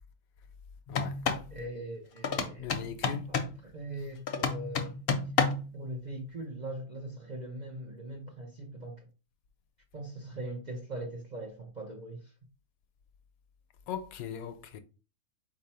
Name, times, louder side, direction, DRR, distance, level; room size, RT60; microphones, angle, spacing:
sound 1, 0.9-1.5 2.2-3.6 4.3-5.7, left 5 dB, 55° left, 0.7 m, -30 dB
voice 1, 1.5-2.7 3.3-5.0 5.7-9.1 9.9-12.3, right 1 dB, 45° right, 0.6 m, -41 dB
voice 2, 2.6-3.3 13.9-14.8, left 8 dB, 80° left, 1.0 m, -39 dB
4.3 x 2.6 x 4.2 m
omnidirectional pair, 1.5 m